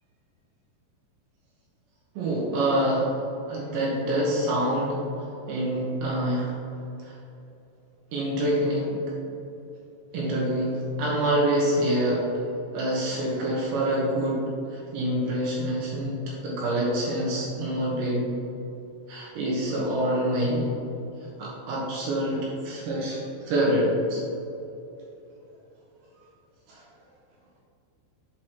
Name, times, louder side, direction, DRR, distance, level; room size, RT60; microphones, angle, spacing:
voice 1, 2.2-3.1 3.5-5.0 5.5-6.6 7.1-7.2 8.1-9.0 10.1-12.3 12.7-14.5 14.7-18.3 19.1-20.7 21.4-24.2 26.7-26.8, right 1 dB, 75° right, -4 dB, 3.0 m, -26 dB
7.7 x 5.9 x 2.9 m, 2.9 s
omnidirectional pair, 5.7 m